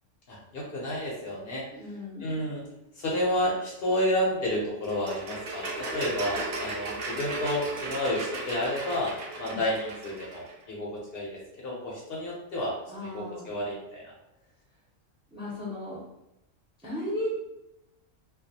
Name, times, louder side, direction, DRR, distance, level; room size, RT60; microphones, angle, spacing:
voice 1, 0.3-1.6 2.2-2.6 3.0-12.7 13.0-14.1, left 1 dB, 60° left, -4 dB, 0.7 m, -30 dB
voice 2, 1.7-2.4 9.4-9.6 12.9-13.5 15.3-16.0 16.8-17.3, left 1 dB, 10° right, -5 dB, 0.4 m, -36 dB
sound 1, 4.8-10.5, right 2 dB, 60° right, 0.5 m, -36 dB
2.3 x 2.2 x 2.6 m, 0.88 s
omnidirectional pair, 1.3 m